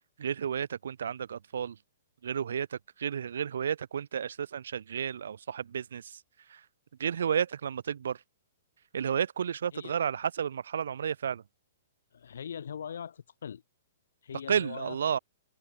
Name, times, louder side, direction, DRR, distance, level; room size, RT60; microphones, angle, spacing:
voice 1, 0.2-1.8 2.2-6.2 6.5-6.6 7.0-8.2 8.9-11.4 14.5-15.2, right 8 dB, 75° right, 0.5 m, -32 dB
voice 2, 12.1-13.6 14.2-15.0, left 8 dB, 75° left, 2.0 m, -41 dB
hypercardioid pair, 175°, 0 cm